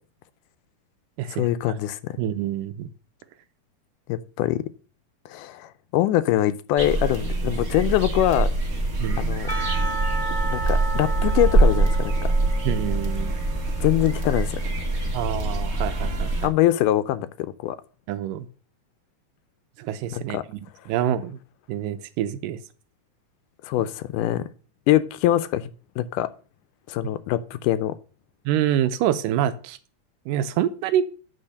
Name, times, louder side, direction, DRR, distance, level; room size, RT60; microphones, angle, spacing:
voice 1, 1.4-2.1 4.1-4.6 5.3-8.5 9.2-9.5 10.5-12.3 13.8-14.6 16.4-17.8 20.1-20.4 23.6-24.4 24.9-25.7 26.0-26.3 26.9-28.0, left 13 dB, 80° left, 14 dB, 2.1 m, -23 dB
voice 2, 2.2-2.9 7.5-7.7 9.0-9.2 12.7-13.4 15.1-16.5 18.1-18.5 19.8-20.4 20.9-21.4 21.7-22.6 28.5-29.8 30.3-31.0, right 10 dB, 90° right, 11 dB, 2.3 m, -26 dB
sound 1, 6.8-16.5, right 2 dB, 55° right, 0.7 m, -24 dB
Percussion / Church bell, 9.5-14.5, right 4 dB, ahead, 1.6 m, -34 dB
10.0 x 4.1 x 6.5 m, 0.38 s
omnidirectional pair, 3.8 m